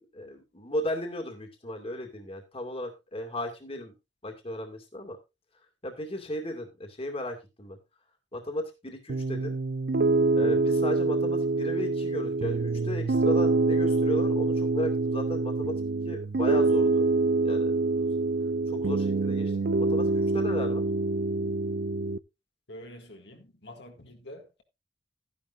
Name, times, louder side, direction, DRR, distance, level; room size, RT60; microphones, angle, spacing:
voice 1, 0.1-3.9 4.2-5.2 5.8-7.8 8.3-9.6 10.4-15.8 16.1-17.1 17.4-18.1 18.7-19.5 19.8-20.9, left 1 dB, 30° left, 2.3 m, -35 dB
Piano, 9.1-22.2, right 3 dB, 60° right, 0.5 m, -26 dB
voice 2, 22.7-24.6, equal, 70° left, 2.0 m, -46 dB
13.0 x 10.5 x 2.6 m
head